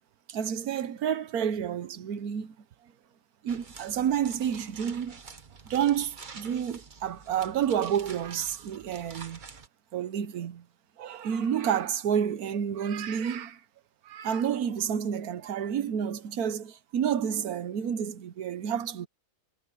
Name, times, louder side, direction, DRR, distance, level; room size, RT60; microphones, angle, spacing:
voice 1, 0.3-2.6 2.8-2.9 3.4-5.2 5.7-9.4 9.9-10.7 11.0-13.6 14.0-19.1, right 8 dB, 80° right, 1.4 m, -30 dB
sound 1, 3.5-9.7, right 5 dB, 35° right, 1.2 m, -48 dB
omnidirectional pair, 1.6 m